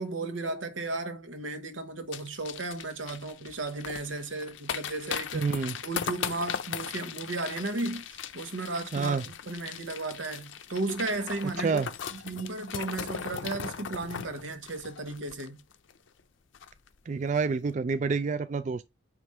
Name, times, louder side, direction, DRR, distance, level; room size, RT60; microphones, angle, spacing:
voice 1, 0.0-5.5 5.8-11.8 12.1-15.6, right 2 dB, 85° right, 1.1 m, -35 dB
sound 1, 2.1-15.9 16.2-16.3 16.5-16.9 17.2-17.4, left 7 dB, 80° left, 0.6 m, -38 dB
voice 2, 5.3-5.8 8.9-9.2 11.6-11.9 17.1-18.9, right 4 dB, 40° right, 0.3 m, -28 dB
5.0 x 3.4 x 5.6 m
head